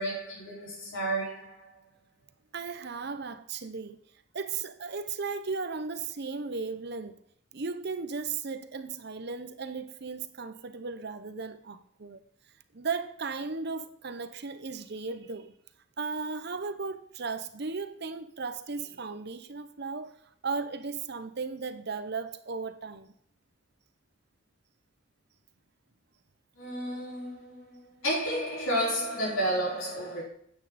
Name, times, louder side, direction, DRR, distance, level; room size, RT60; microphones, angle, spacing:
voice 1, 0.0-1.7 26.6-30.2, right 1 dB, 75° left, 4.8 m, -31 dB
voice 2, 2.5-4.0 4.3-7.2 7.5-12.2 12.7-15.5 16.0-20.2 20.4-23.1, right 4 dB, 50° right, 0.7 m, -36 dB
9.8 x 8.9 x 4.2 m
head